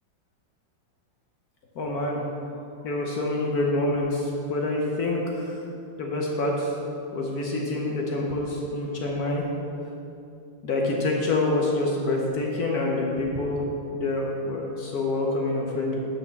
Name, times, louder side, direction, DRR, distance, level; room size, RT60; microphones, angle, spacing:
voice 1, 1.8-2.2 2.8-5.2 6.0-6.7 7.1-9.4 10.6-13.6 13.9-16.0, left 2 dB, 60° left, -1 dB, 1.2 m, -26 dB
6.2 x 5.5 x 7.0 m, 2.7 s
omnidirectional pair, 2.1 m